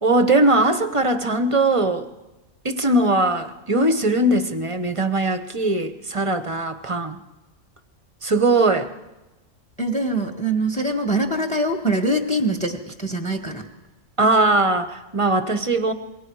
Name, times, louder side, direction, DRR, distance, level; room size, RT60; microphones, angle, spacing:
voice 1, 0.0-2.1 2.6-7.2 8.2-8.9 14.2-15.9, right 2 dB, 30° right, 9 dB, 1.0 m, -20 dB
voice 2, 9.8-13.6, right 1 dB, 5° left, 5 dB, 1.5 m, -23 dB
27.5 x 22.5 x 4.8 m, 1.1 s
omnidirectional pair, 1.3 m